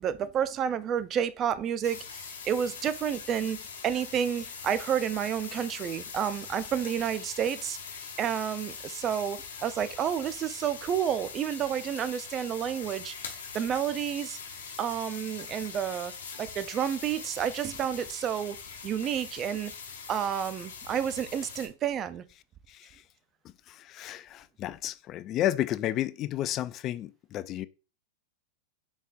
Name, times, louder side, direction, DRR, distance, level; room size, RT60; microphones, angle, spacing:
voice 1, 0.0-3.6 3.8-7.8 8.2-13.2 13.5-14.4 14.8-16.1 16.4-18.6 18.8-19.7 20.1-22.2, right 9 dB, 35° right, 0.4 m, -30 dB
sound 1, 1.8-21.7, left 6 dB, 85° left, 1.0 m, -42 dB
voice 2, 23.7-27.7, left 13 dB, 40° left, 0.3 m, -32 dB
4.0 x 3.6 x 2.5 m
hypercardioid pair, 110°, 0 cm